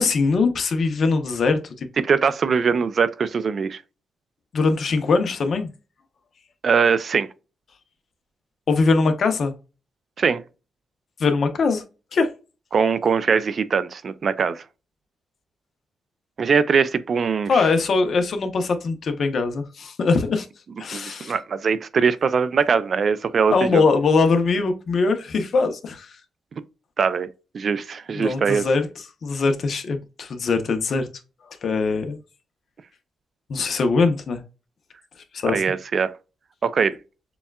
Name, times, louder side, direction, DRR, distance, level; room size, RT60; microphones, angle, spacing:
voice 1, 0.0-1.9 4.5-5.7 8.7-9.5 11.2-11.8 12.1-12.3 17.5-20.5 20.8-21.3 23.5-26.2 28.1-28.9 29.2-31.1 31.6-32.2 33.5-34.4 35.3-35.6, left 4 dB, 50° left, 0.8 m, -21 dB
voice 2, 2.0-3.8 6.6-7.3 10.2-10.4 12.7-14.6 16.4-17.6 20.9-23.8 27.0-27.3 27.5-28.6 35.4-36.1 36.6-36.9, right 6 dB, 45° right, 0.4 m, -21 dB
6.9 x 2.3 x 2.3 m
cardioid pair, 130°, 0 cm